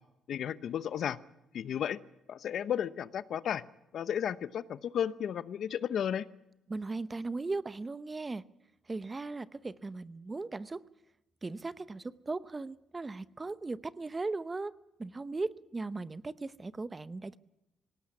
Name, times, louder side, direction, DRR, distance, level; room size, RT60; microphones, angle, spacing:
voice 1, 0.3-1.2 1.5-2.0 2.3-3.6 3.9-6.3, left 9 dB, 65° left, 0.8 m, -33 dB
voice 2, 6.7-8.4 8.9-10.9 11.4-14.7 15.0-17.4, right 3 dB, 25° right, 0.8 m, -38 dB
19.0 x 18.0 x 9.6 m
cardioid pair, 90°, 0 cm